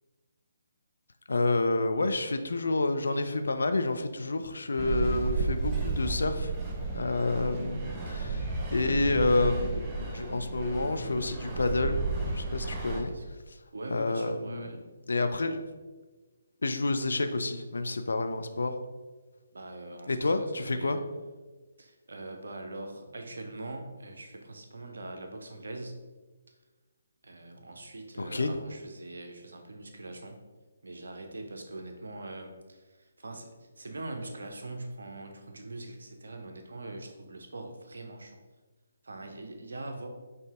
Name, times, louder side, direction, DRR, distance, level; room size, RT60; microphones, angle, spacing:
voice 1, 1.3-6.5 6.9-8.5 8.7-12.0 12.3-13.1 13.9-14.8 15.1-15.6 16.6-18.8 20.1-21.0 28.2-28.5, left 2 dB, 65° left, 8 dB, 0.3 m, -29 dB
sound 1, 4.8-13.0, right 3 dB, 20° right, 0.5 m, -33 dB
voice 2, 13.7-14.8 19.5-21.0 21.8-26.0 27.2-30.4 30.8-38.4 39.0-40.1, right 2 dB, 65° right, 4 dB, 0.5 m, -42 dB
5.4 x 2.6 x 2.4 m, 1.3 s
figure-of-eight pair, 140°, 0 cm